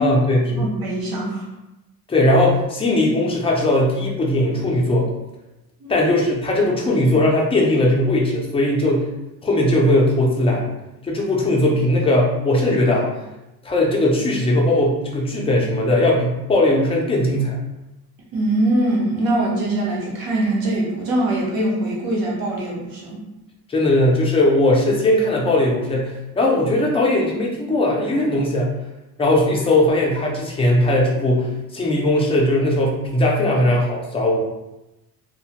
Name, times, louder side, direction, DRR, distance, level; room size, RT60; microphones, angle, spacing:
voice 1, 0.0-0.7 2.1-5.1 5.9-9.1 9.4-10.7 11.0-13.1 13.6-17.6 23.7-28.7 29.2-34.4, left 1 dB, 15° left, -2 dB, 0.3 m, -19 dB
voice 2, 0.6-1.5 5.8-6.1 18.3-23.2, right 1 dB, 65° right, -4 dB, 0.8 m, -22 dB
2.2 x 2.0 x 2.7 m, 0.96 s
wide cardioid pair, 155°, 39 cm